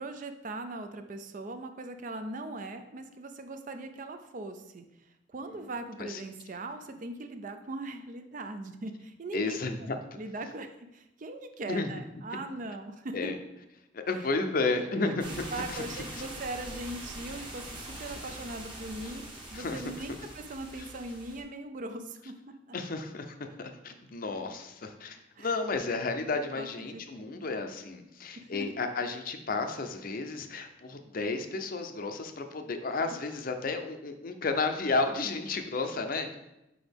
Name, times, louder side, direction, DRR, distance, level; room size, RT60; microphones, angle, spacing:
voice 1, 0.0-4.8 5.3-9.6 10.2-13.2 14.7-15.1 15.5-19.2 19.5-22.4 22.7-22.8 25.4-25.5 26.5-27.0 27.3-27.8 28.4-28.7, right 2 dB, 40° right, 8 dB, 0.4 m, -40 dB
voice 2, 9.3-10.0 11.7-11.9 13.1-13.4 13.9-15.4 15.7-16.2 19.0-19.2 19.5-20.1 20.7-20.9 22.7-36.4, left 3 dB, 45° left, 6 dB, 0.5 m, -32 dB
sound 1, 15.2-21.4, right 1 dB, 25° right, 1.1 m, -43 dB
6.1 x 4.8 x 3.5 m, 0.90 s
head